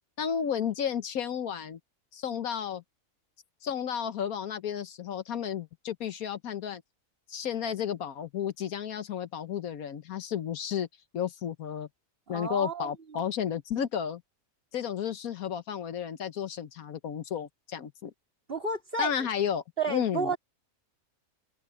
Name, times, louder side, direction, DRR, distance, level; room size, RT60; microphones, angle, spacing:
voice 1, 0.2-1.8 2.1-2.8 3.6-6.8 7.3-10.9 11.1-11.9 12.3-14.2 14.7-18.1 19.0-20.4, left 8 dB, 70° left, 1.4 m, -32 dB
voice 2, 12.3-13.3 18.5-19.1 19.8-20.4, right 3 dB, 35° right, 2.9 m, -32 dB
omnidirectional pair, 1.6 m